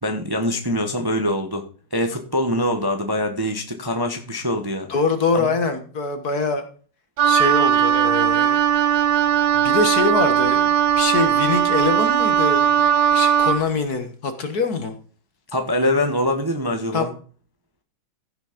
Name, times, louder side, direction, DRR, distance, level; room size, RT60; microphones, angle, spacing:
voice 1, 0.0-1.6 1.9-4.9 5.3-5.5 15.5-17.1, left 1 dB, 15° right, 5 dB, 1.0 m, -23 dB
voice 2, 4.9-6.7 7.2-8.6 9.5-15.0 16.9-17.1, left 4 dB, 50° left, 8 dB, 1.8 m, -24 dB
Wind instrument woodwind instrument, 7.2-13.6, right 9 dB, 65° right, 1.3 m, -18 dB
15.0 x 6.2 x 5.2 m, 0.41 s
omnidirectional pair, 2.3 m